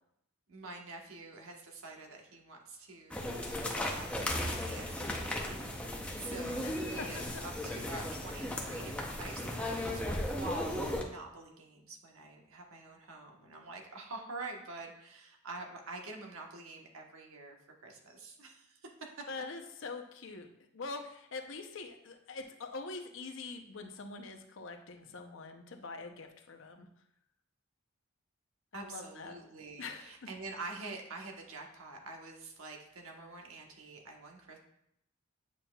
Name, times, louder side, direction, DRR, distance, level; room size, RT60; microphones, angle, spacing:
voice 1, 0.5-3.4 3.7-17.6 17.8-18.9 28.7-34.6, right 2 dB, 80° right, 1 dB, 1.2 m, -46 dB
sound 1, 3.1-11.0, left 1 dB, 5° left, 0.6 m, -36 dB
voice 2, 6.6-7.3 19.3-20.5 20.7-26.9 28.7-29.4 29.8-30.1, left 3 dB, 60° left, 5 dB, 0.7 m, -44 dB
8.5 x 5.5 x 2.3 m, 0.76 s
head